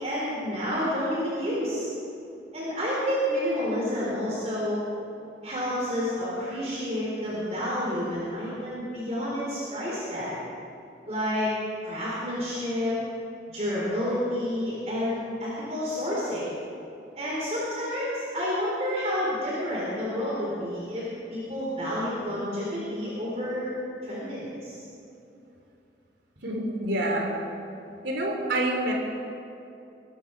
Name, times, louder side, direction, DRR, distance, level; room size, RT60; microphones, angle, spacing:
voice 1, 0.0-1.9 2.5-4.8 5.4-10.4 11.1-11.5 11.8-13.0 13.5-16.5 17.2-23.7 24.0-24.8, equal, 35° right, -7 dB, 4.0 m, -29 dB
voice 2, 26.4-27.4 28.0-28.9, right 1 dB, 80° right, 1 dB, 3.2 m, -27 dB
23.0 x 12.5 x 4.8 m, 2.8 s
head